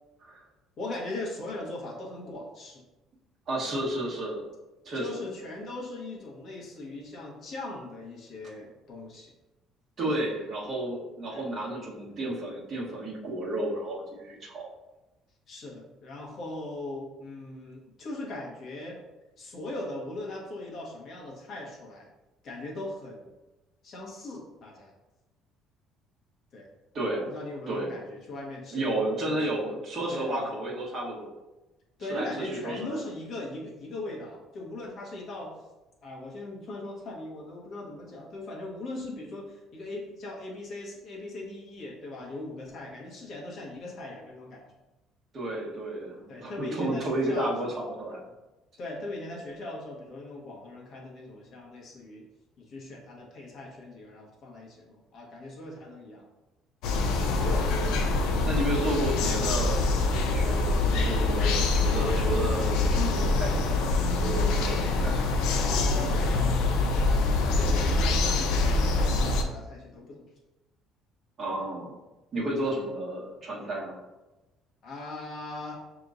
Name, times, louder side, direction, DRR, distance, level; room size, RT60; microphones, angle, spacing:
voice 1, 0.8-2.8 4.9-9.3 10.3-10.4 11.3-11.4 15.5-19.0 19.4-22.1 22.4-23.3 23.8-24.9 26.5-26.7 27.2-29.5 30.1-30.6 32.0-35.5 36.0-44.6 46.3-47.8 48.8-52.2 52.6-56.3 65.5-67.1 67.4-70.3 72.7-72.9 74.8-75.7, left 2 dB, 40° left, -2 dB, 1.1 m, -39 dB
voice 2, 3.5-4.4 4.8-5.3 10.0-14.7 26.9-27.3 27.7-27.9 28.7-31.3 32.1-33.0 45.3-48.2 57.4-57.8 58.4-65.2 65.6-66.3 71.4-71.9 72.3-74.0, right 1 dB, 35° right, -5 dB, 1.2 m, -32 dB
sound 1, 56.8-69.4, left 3 dB, 85° left, 0.5 m, -25 dB
5.9 x 3.0 x 2.6 m, 1.0 s
cardioid pair, 165°, 0 cm